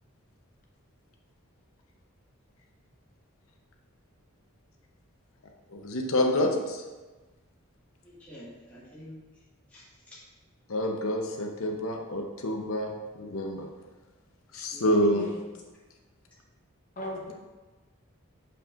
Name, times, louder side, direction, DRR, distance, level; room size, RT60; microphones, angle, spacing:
voice 1, 5.7-6.8 10.7-13.7 14.5-15.3, left 1 dB, 85° left, 2 dB, 0.9 m, -27 dB
voice 2, 8.0-9.4 9.7-10.2 14.7-15.0, equal, 5° left, -10 dB, 1.8 m, -48 dB
voice 3, 15.0-15.4 17.0-17.3, equal, 40° left, -2 dB, 1.2 m, -37 dB
6.9 x 5.8 x 2.5 m, 1.2 s
head